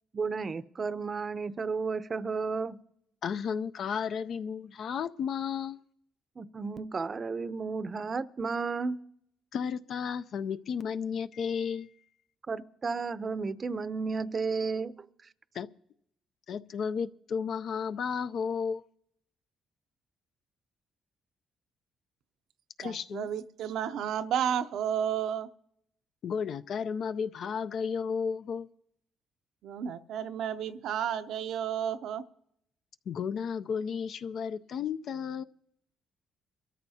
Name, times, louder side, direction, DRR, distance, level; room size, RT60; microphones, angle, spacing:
voice 1, 0.1-2.8 6.4-9.0 12.5-14.9, right 4 dB, 35° right, 0.6 m, -33 dB
voice 2, 3.2-5.8 9.5-11.9 15.5-15.7 16.5-18.8 22.8-23.3 26.2-28.7 33.1-35.4, left 6 dB, 65° left, 0.5 m, -33 dB
voice 3, 22.8-25.5 29.6-32.2, right 9 dB, 80° right, 0.6 m, -32 dB
24.0 x 13.5 x 2.8 m
cardioid pair, 90°, 0 cm